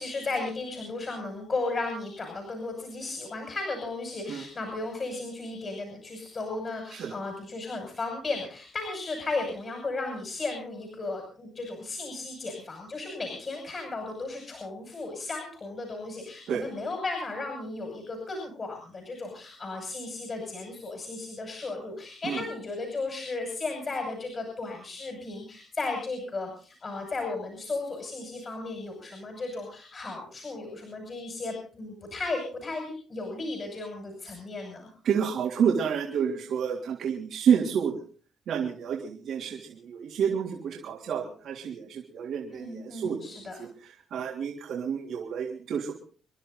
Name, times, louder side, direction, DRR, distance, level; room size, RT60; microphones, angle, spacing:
voice 1, 0.0-34.9 42.5-43.6, left 3 dB, 35° left, 3 dB, 6.5 m, -35 dB
voice 2, 35.0-38.0 38.5-43.2 43.6-45.9, right 7 dB, 70° right, -1 dB, 3.3 m, -29 dB
28.5 x 11.5 x 4.1 m, 0.40 s
cardioid pair, 90°, 0 cm